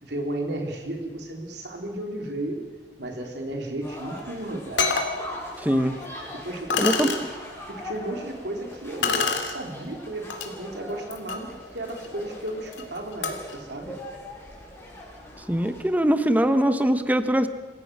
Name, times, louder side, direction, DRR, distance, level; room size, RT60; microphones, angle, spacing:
voice 1, 0.0-2.6 3.0-4.9 6.4-7.2 7.6-14.0, right 1 dB, 65° right, 2 dB, 3.4 m, -34 dB
sound 1, 3.8-15.8, left 1 dB, 15° left, 6.1 m, -42 dB
sound 2, 4.2-4.3 4.8-5.2 6.0-6.1 6.7-7.2 9.0-9.6 10.3-10.5 11.0-13.6, left 5 dB, 85° left, 2.8 m, -28 dB
voice 2, 5.6-6.0 6.8-7.1 15.5-17.5, equal, 10° right, 10 dB, 1.0 m, -22 dB
27.0 x 16.0 x 6.1 m, 1.4 s
head